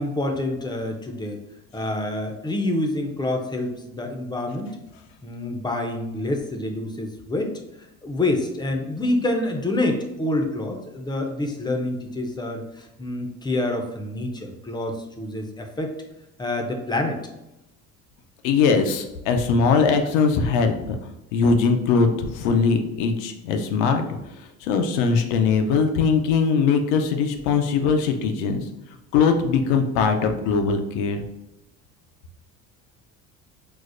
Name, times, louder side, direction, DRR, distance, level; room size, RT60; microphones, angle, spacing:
voice 1, 0.0-1.4 1.7-4.8 5.2-7.6 8.0-16.0 16.4-17.2, left 1 dB, 15° left, 3 dB, 0.5 m, -27 dB
voice 2, 18.4-21.0 21.3-24.1 24.6-28.7 29.1-31.2, left 5 dB, 90° left, 5 dB, 0.6 m, -21 dB
4.8 x 2.0 x 2.5 m, 0.91 s
supercardioid pair, 95°, 33 cm